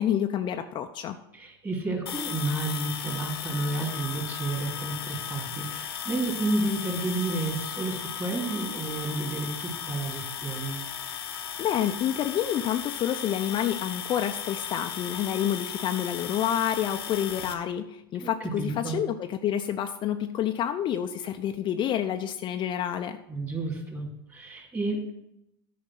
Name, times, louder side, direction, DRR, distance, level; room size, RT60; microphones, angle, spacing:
voice 1, 0.0-1.2 11.6-23.2, left 10 dB, 40° left, 7 dB, 0.6 m, -28 dB
voice 2, 1.3-10.8 18.1-18.3 18.6-19.0 23.3-25.1, right 2 dB, 20° right, 2 dB, 3.0 m, -31 dB
sound 1, 2.1-17.5, left 8 dB, 85° left, 1.1 m, -36 dB
9.7 x 5.2 x 7.6 m, 0.82 s
hypercardioid pair, 95°, 12 cm